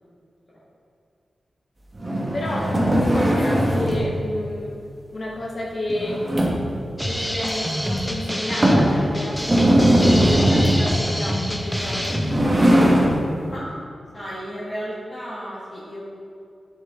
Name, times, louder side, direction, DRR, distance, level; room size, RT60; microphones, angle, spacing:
sound 1, 2.0-4.1 5.9-6.8 7.4-7.5 8.0-8.1 8.6-8.9 9.4-10.9 11.9-13.2, equal, 25° right, 1.6 m, -19 dB
voice 1, 2.3-4.8 5.1-6.3 7.0-12.3, left 1 dB, 50° left, -2 dB, 1.1 m, -30 dB
sound 2, 7.0-12.5, equal, ahead, 0.6 m, -27 dB
voice 2, 8.8-9.1 13.5-13.7 14.1-16.0, equal, 35° left, -11 dB, 2.1 m, -34 dB
9.4 x 7.2 x 3.9 m, 2.5 s
wide cardioid pair, 115°, 0 cm